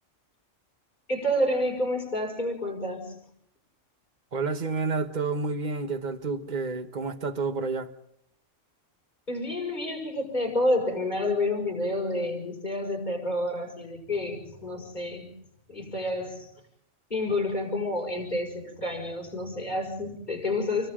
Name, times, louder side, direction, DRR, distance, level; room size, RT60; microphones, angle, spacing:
voice 1, 1.1-3.2 9.3-15.3 15.7-16.5 17.1-20.9, left 1 dB, 35° left, 6.1 m, -29 dB
voice 2, 4.3-7.9, right 4 dB, 35° right, 1.3 m, -29 dB
29.0 x 24.0 x 3.8 m
omnidirectional pair, 1.3 m